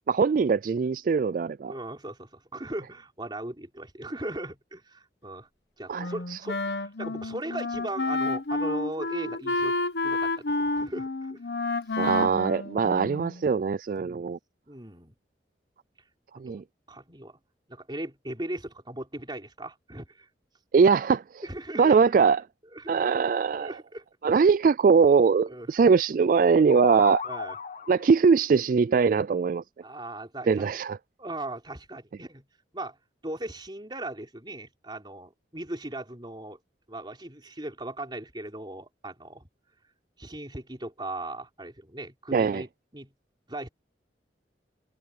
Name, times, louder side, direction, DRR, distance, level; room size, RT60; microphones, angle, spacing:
voice 1, 0.1-1.7 5.9-6.4 12.0-14.4 16.4-16.6 20.7-21.4 21.8-22.4 22.9-23.7 24.2-27.2 27.9-29.6 30.5-31.0 42.3-42.6, right 5 dB, 50° right, 0.3 m, -22 dB
voice 2, 1.7-5.5 5.8-9.8 10.0-11.4 14.0-14.3 14.7-15.1 16.5-17.4 17.7-20.3 21.4-22.0 22.7-23.1 23.6-24.0 25.5-25.7 27.2-27.6 29.8-30.8 31.2-32.4 32.7-33.0 33.2-36.6 36.9-39.5 40.2-43.1 43.5-43.7, right 1 dB, 25° right, 4.0 m, -38 dB
Wind instrument woodwind instrument, 6.0-13.4, left 2 dB, 65° left, 1.0 m, -30 dB
sound 1, 26.3-28.2, left 5 dB, 45° left, 1.0 m, -35 dB
head